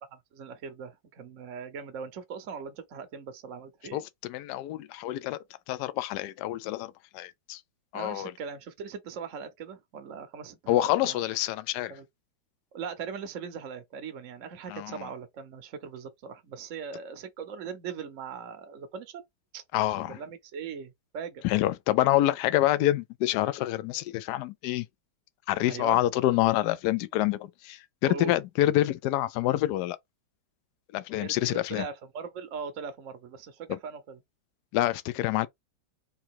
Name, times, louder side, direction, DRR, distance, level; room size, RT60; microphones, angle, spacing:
voice 1, 0.3-4.0 7.9-11.2 11.9-12.0 12.7-19.2 19.5-19.6 20.0-21.4 25.7-26.0 28.1-28.3 31.2-34.2, right 6 dB, 55° right, 1.0 m, -40 dB
voice 2, 3.9-5.4 5.7-7.6 7.9-8.3 10.7-11.9 14.7-15.0 19.7-20.2 21.4-24.9 25.5-30.0 30.9-31.8 33.7-33.8 34.7-35.5, left 15 dB, 75° left, 1.1 m, -27 dB
3.7 x 2.8 x 4.4 m
omnidirectional pair, 1.9 m